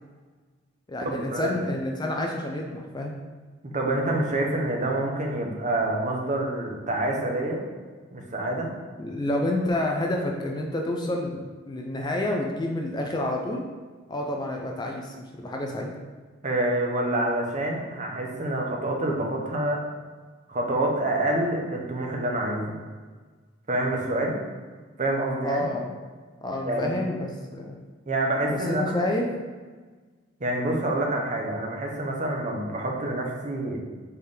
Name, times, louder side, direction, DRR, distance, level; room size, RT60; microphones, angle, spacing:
voice 1, 0.9-3.2 9.0-11.4 11.7-13.6 14.1-15.9 25.4-25.9 26.4-27.8 28.5-29.3, left 1 dB, 20° left, 1 dB, 0.4 m, -29 dB
voice 2, 3.6-7.6 8.1-8.7 16.4-19.8 20.5-22.7 23.7-24.3 25.0-25.7 26.6-27.0 28.1-28.9 30.4-33.8, right 1 dB, 35° right, 0 dB, 0.7 m, -27 dB
4.4 x 3.6 x 3.3 m, 1.4 s
head